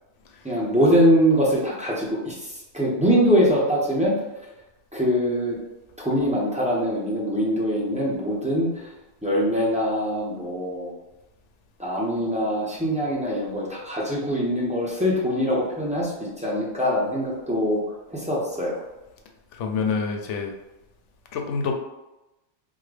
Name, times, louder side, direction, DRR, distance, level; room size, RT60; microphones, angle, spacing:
voice 1, 0.4-4.1 4.9-5.6 6.0-8.9 9.2-10.9 11.8-18.8, equal, 10° right, -5 dB, 0.5 m, -23 dB
voice 2, 19.6-20.5 21.3-21.7, left 5 dB, 85° left, 3 dB, 0.9 m, -26 dB
3.7 x 2.1 x 3.3 m, 0.98 s
omnidirectional pair, 1.2 m